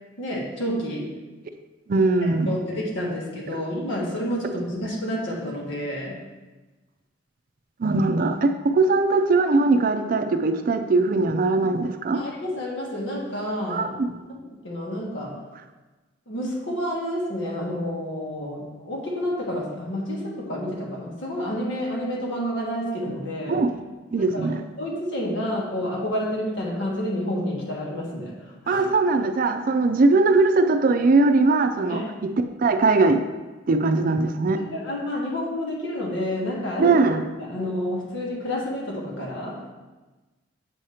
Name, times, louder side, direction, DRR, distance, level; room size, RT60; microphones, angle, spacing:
voice 1, 0.2-1.1 2.5-6.2 12.1-13.9 14.3-14.4 14.6-15.4 16.3-23.6 24.2-24.5 24.8-28.3 28.6-28.9 31.9-32.1 34.6-37.0 37.4-39.6, equal, 85° left, -3 dB, 1.5 m, -29 dB
voice 2, 1.9-2.5 3.5-3.6 7.8-12.2 13.7-14.1 23.5-23.7 24.1-24.6 28.7-32.3 32.6-33.2 33.7-34.6 36.8-37.2, right 3 dB, 50° right, 8 dB, 0.4 m, -20 dB
7.6 x 2.9 x 4.9 m, 1.2 s
head